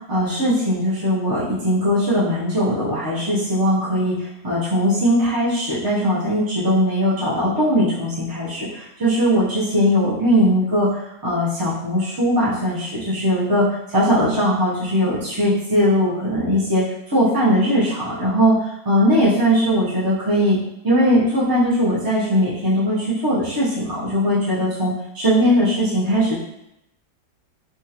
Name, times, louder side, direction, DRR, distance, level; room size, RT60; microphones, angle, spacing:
voice 1, 0.1-4.2 4.4-10.9 11.2-20.6 20.8-26.4, equal, 35° right, -9 dB, 0.3 m, -19 dB
3.5 x 2.4 x 2.8 m, 0.84 s
omnidirectional pair, 1.7 m